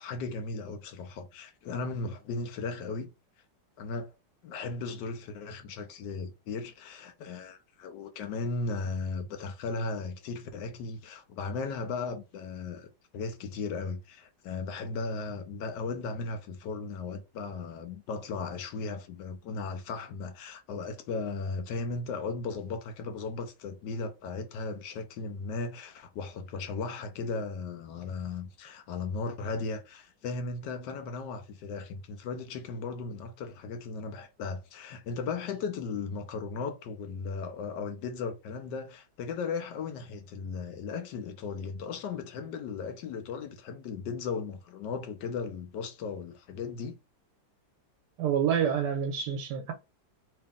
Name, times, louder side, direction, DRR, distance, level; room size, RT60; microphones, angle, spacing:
voice 1, 0.0-3.1 3.8-4.1 4.4-47.0, left 4 dB, 75° left, 1.3 m, -36 dB
voice 2, 48.2-49.7, right 8 dB, 80° right, 1.2 m, -28 dB
3.1 x 2.9 x 3.6 m
omnidirectional pair, 2.0 m